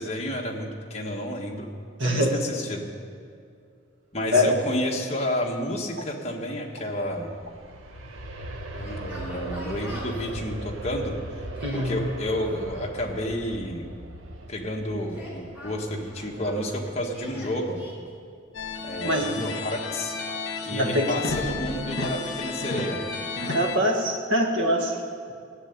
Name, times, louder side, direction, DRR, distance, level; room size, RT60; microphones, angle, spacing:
voice 1, 0.0-1.7 2.0-2.8 4.1-7.3 8.7-11.1 11.7-13.9 14.5-17.8 18.8-20.1 20.6-23.0, left 1 dB, 30° left, -1 dB, 1.5 m, -30 dB
voice 2, 2.0-2.4 4.3-4.6 11.6-12.0 19.0-19.5 20.7-21.1 23.5-25.0, equal, 65° right, 2 dB, 1.7 m, -23 dB
Aircraft, 7.0-17.7 18.2-18.3, right 1 dB, 80° right, 1.1 m, -39 dB
Yell, 8.8-10.3 11.4-12.4 15.0-16.7 17.1-17.9, equal, 10° right, 3.3 m, -44 dB
sound 1, 18.5-23.8, left 3 dB, 65° left, 1.4 m, -32 dB
14.5 x 6.9 x 9.4 m, 2.3 s
head